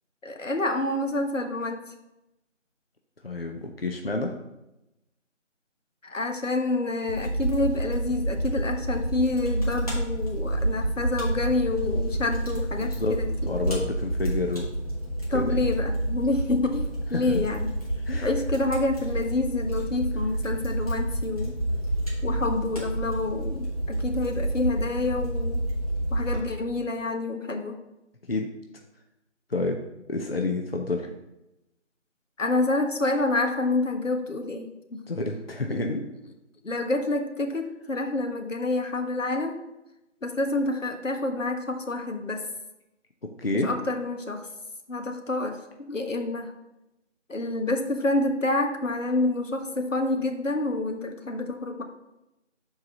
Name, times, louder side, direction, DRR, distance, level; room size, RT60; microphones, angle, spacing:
voice 1, 0.2-1.8 6.0-13.6 15.3-17.7 18.2-21.5 22.2-25.6 26.1-27.8 32.4-35.0 35.7-35.8 36.6-39.6 40.2-42.4 43.5-44.5 44.9-45.6 45.9-46.5 47.3-51.8, left 2 dB, 90° left, 4 dB, 1.4 m, -28 dB
voice 2, 3.2-4.3 12.8-13.2 13.5-14.7 15.3-15.6 17.1-17.4 18.0-18.3 28.3-28.5 29.5-29.8 30.1-31.1 35.1-36.0 43.2-43.7, left 2 dB, 50° left, 3 dB, 0.8 m, -29 dB
Fire, 7.1-26.4, right 1 dB, 30° left, 1.9 m, -29 dB
11.5 x 4.7 x 2.9 m, 0.92 s
figure-of-eight pair, 175°, 37 cm